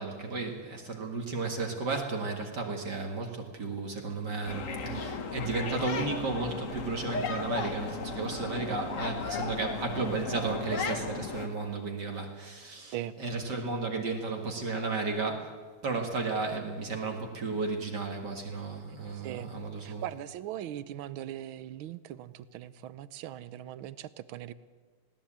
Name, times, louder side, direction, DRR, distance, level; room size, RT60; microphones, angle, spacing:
voice 1, 0.0-20.0, right 3 dB, 55° right, 3 dB, 2.4 m, -34 dB
sound 1, 4.5-11.5, left 4 dB, 45° left, 1.5 m, -35 dB
voice 2, 19.8-24.5, right 12 dB, 80° right, 16 dB, 1.6 m, -40 dB
20.0 x 17.0 x 8.7 m, 1.5 s
omnidirectional pair, 2.3 m